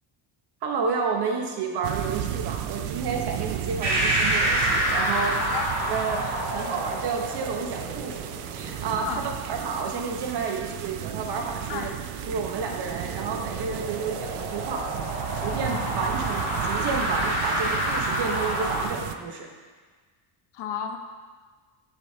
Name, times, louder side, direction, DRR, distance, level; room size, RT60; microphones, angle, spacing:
voice 1, 0.6-5.4 5.9-8.2 8.5-11.9 12.3-14.8 15.4-19.5, right 5 dB, 50° right, 2 dB, 1.1 m, -30 dB
sound 1, 1.8-19.2, right 12 dB, 85° right, 0.6 m, -34 dB
sound 2, 3.8-18.8, equal, 30° right, 2.2 m, -29 dB
voice 2, 9.0-9.3 11.7-11.9 15.5-15.9 20.5-21.0, left 8 dB, 55° left, 5 dB, 0.7 m, -33 dB
9.6 x 7.2 x 2.8 m, 1.4 s
cardioid pair, 165°, 50 cm